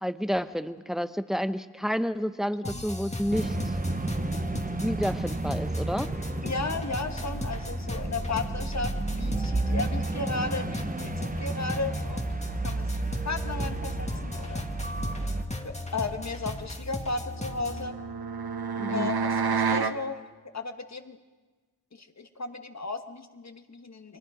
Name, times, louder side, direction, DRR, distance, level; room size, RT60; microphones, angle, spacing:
voice 1, 0.0-3.8 4.8-6.1 18.8-19.1, equal, ahead, 11 dB, 0.9 m, -30 dB
sound 1, 2.6-17.9, left 2 dB, 15° left, 1.9 m, -37 dB
sound 2, 3.3-15.4, right 2 dB, 20° right, 1.0 m, -32 dB
voice 2, 6.4-12.2 12.6-14.6 15.6-17.9 18.9-20.2 20.5-21.2 21.9-24.2, left 3 dB, 40° left, 7 dB, 1.6 m, -35 dB
sound 3, 17.4-20.0, right 5 dB, 70° right, 1.1 m, -29 dB
30.0 x 24.0 x 5.1 m, 1.3 s
wide cardioid pair, 95°, 39 cm